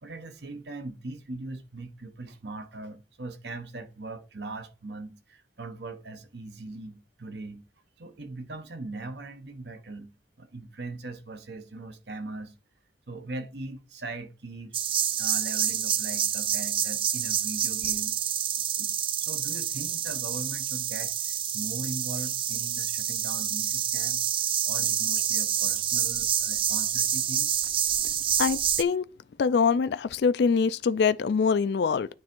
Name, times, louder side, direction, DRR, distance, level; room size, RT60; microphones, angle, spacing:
voice 1, 0.0-7.6 8.0-10.1 10.4-12.5 13.1-14.8 15.2-18.1 18.8-18.9 19.2-24.2 24.6-27.7, right 2 dB, 65° right, 1.1 m, -40 dB
sound 1, 14.7-28.8, right 10 dB, 30° right, 0.3 m, -28 dB
voice 2, 28.4-29.0 29.4-32.1, left 5 dB, 60° left, 0.3 m, -24 dB
9.4 x 3.5 x 4.5 m
head